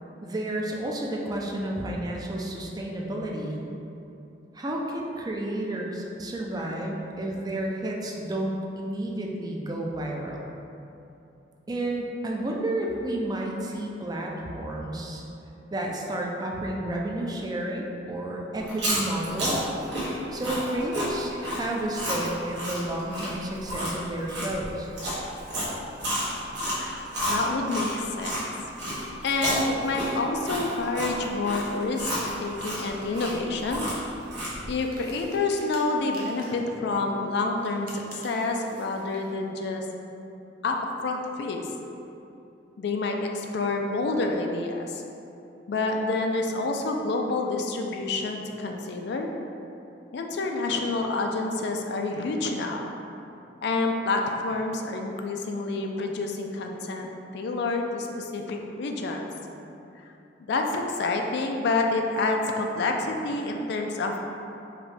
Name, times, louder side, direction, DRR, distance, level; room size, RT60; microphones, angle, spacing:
voice 1, 0.2-3.6 4.5-10.4 11.7-15.2 15.7-19.7 20.3-24.9, right 1 dB, 20° right, -2 dB, 0.4 m, -31 dB
Chewing mastication, 18.6-28.4 28.8-34.7, equal, 75° right, 1.3 m, -31 dB
voice 2, 26.6-28.5 29.2-32.1 32.4-33.9 34.7-39.9 40.6-40.8 41.0-41.7 42.8-45.0 45.7-49.3 50.1-52.9 53.6-59.6 60.4-64.2, left 3 dB, 65° left, 2 dB, 0.4 m, -28 dB
sound 1, 34.7-36.7 37.6-39.4, right 2 dB, 55° right, 0.7 m, -49 dB
4.9 x 2.7 x 3.3 m, 2.8 s
head